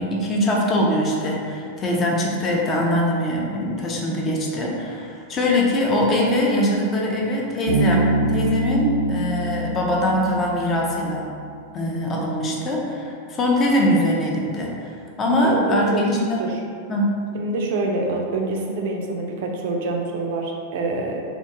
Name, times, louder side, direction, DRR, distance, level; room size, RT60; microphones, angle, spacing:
voice 1, 0.0-11.3 11.7-14.9 15.2-16.5 16.9-17.2, left 1 dB, 25° left, -2 dB, 0.5 m, -22 dB
Bass guitar, 7.7-11.4, right 1 dB, 70° left, 0.8 m, -24 dB
voice 2, 12.4-12.8 15.4-16.0 16.4-16.5 17.3-21.2, right 2 dB, 50° right, 1 dB, 0.4 m, -26 dB
2.4 x 2.2 x 2.8 m, 2.3 s
figure-of-eight pair, 90°, 0 cm